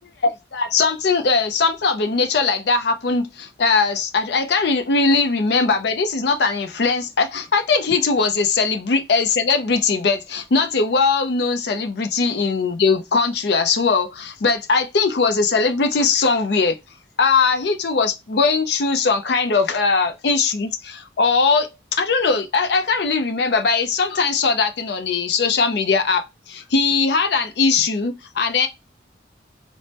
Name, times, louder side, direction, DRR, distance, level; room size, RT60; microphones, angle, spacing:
voice 1, 0.2-16.8 17.2-28.7, left 4 dB, 65° left, 0.5 m, -20 dB
4.1 x 2.1 x 3.2 m
head